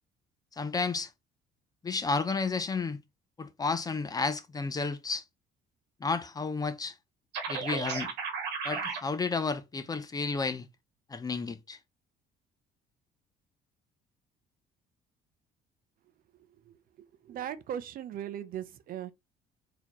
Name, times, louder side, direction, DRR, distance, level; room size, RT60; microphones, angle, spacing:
voice 1, 0.5-1.1 1.8-3.0 3.4-5.2 6.0-7.0 7.5-8.1 8.6-10.7 11.1-11.8, left 4 dB, 20° left, 0.5 m, -32 dB
sound 1, 7.3-9.0, right 5 dB, 85° right, 1.1 m, -34 dB
voice 2, 16.7-19.1, right 10 dB, 60° right, 0.5 m, -39 dB
4.1 x 2.8 x 3.0 m
cardioid pair, 110°, 17 cm